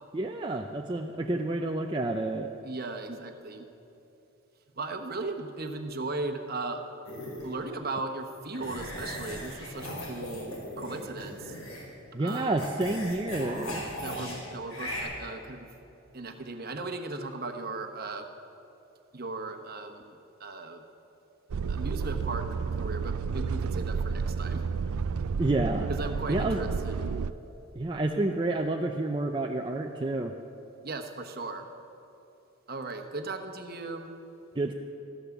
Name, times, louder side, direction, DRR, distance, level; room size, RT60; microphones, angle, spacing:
voice 1, 0.1-2.5 12.1-13.8 25.4-25.9 26.3-26.6 27.8-30.3 34.6-34.7, right 2 dB, 20° right, 2 dB, 0.5 m, -29 dB
voice 2, 2.6-3.7 4.7-6.8 7.4-11.5 12.2-12.6 13.9-15.7 16.1-18.3 19.1-20.8 21.7-22.5 22.7-24.6 25.9-27.1 30.8-31.7 32.7-34.1, right 3 dB, 45° right, 5 dB, 1.1 m, -37 dB
sound 1, 7.0-7.5 8.5-11.9 12.3-14.4 14.7-15.0, left 1 dB, 90° left, 4.7 m, -38 dB
sound 2, 21.5-27.3, right 5 dB, 90° right, 0.4 m, -31 dB
15.0 x 12.0 x 7.1 m, 2.9 s
head